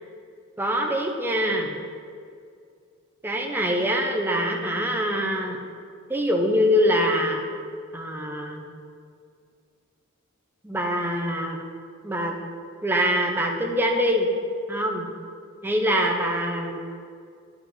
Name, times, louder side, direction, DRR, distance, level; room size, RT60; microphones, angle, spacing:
voice 1, 0.6-1.8 3.2-5.6 6.1-7.5 7.9-8.6 10.6-11.6 12.0-12.4 12.8-14.3 14.7-15.1 15.6-16.8, equal, 10° right, 1 dB, 0.7 m, -24 dB
9.5 x 5.0 x 5.5 m, 2.3 s
head